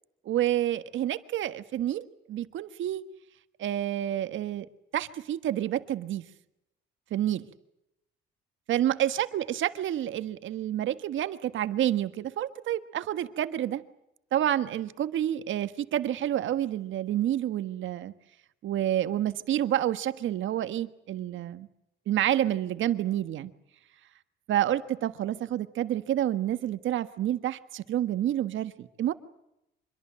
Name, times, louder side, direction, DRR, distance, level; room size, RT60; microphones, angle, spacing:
voice 1, 0.2-3.0 3.6-4.7 4.9-6.2 7.1-7.5 8.7-13.8 14.3-18.1 18.6-21.7 22.1-23.5 24.5-29.1, right 12 dB, 75° right, 12 dB, 1.5 m, -29 dB
25.5 x 22.5 x 7.7 m, 0.85 s
cardioid pair, 90°, 20 cm